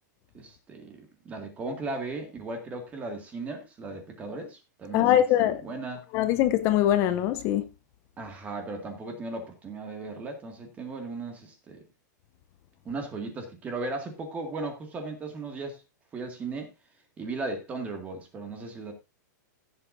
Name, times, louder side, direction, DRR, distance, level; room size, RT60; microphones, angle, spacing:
voice 1, 0.3-6.0 8.2-11.8 12.9-15.8 16.1-16.7 17.2-18.9, right 3 dB, 15° right, 2.0 m, -37 dB
voice 2, 4.9-5.6 6.1-7.6, left 12 dB, 25° left, 0.7 m, -22 dB
16.0 x 7.9 x 2.6 m
supercardioid pair, 165°, 10 cm